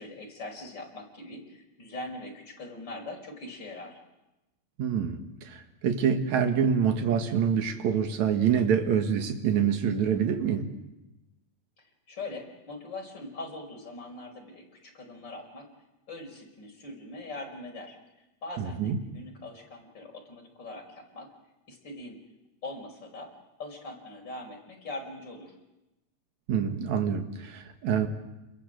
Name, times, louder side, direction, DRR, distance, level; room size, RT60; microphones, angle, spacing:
voice 1, 0.0-4.0 12.1-15.7 16.1-18.0 18.4-21.3 21.7-22.2 22.6-23.3 23.6-25.5, left 2 dB, 35° left, 1 dB, 5.9 m, -41 dB
voice 2, 4.8-10.7 18.6-19.0 26.5-28.1, right 7 dB, 70° right, 5 dB, 3.1 m, -26 dB
29.5 x 22.0 x 7.9 m, 1.0 s
omnidirectional pair, 3.4 m